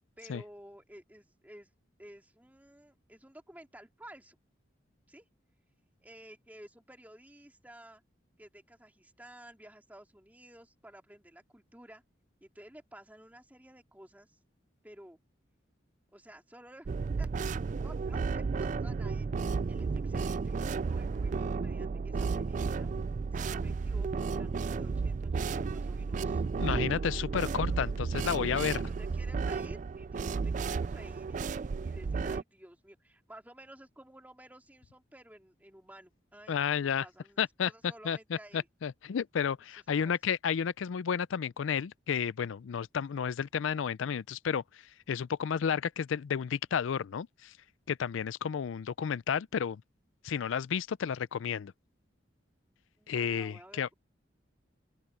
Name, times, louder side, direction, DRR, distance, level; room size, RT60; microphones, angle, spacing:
voice 1, 0.2-1.7 2.0-4.4 5.1-5.3 6.0-8.0 8.4-12.0 12.4-14.4 14.8-15.2 16.1-16.9 17.2-17.3 17.8-18.4 18.8-22.9 23.3-26.4 27.3-27.9 28.7-38.7 40.0-40.2 53.0-53.9, right 1 dB, 10° right, 2.9 m, -53 dB
sound 1, 16.8-32.4, right 4 dB, 40° right, 0.3 m, -33 dB
voice 2, 26.6-27.9 28.2-28.8 36.5-37.1 37.4-37.7 38.0-44.6 45.1-47.5 47.9-49.8 50.2-51.7 53.1-53.9, left 7 dB, 90° left, 0.4 m, -32 dB
open air
head